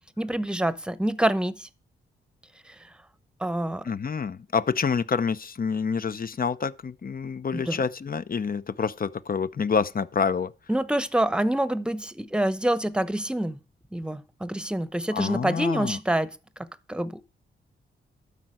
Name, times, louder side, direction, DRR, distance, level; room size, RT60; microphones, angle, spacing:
voice 1, 0.2-1.7 3.4-3.8 7.5-7.8 10.7-13.6 13.9-16.3 16.9-17.2, right 1 dB, 5° right, 0.9 m, -26 dB
voice 2, 3.8-10.5 15.1-16.0, left 5 dB, 45° left, 0.8 m, -27 dB
12.5 x 4.8 x 7.7 m
cardioid pair, 65°, 21 cm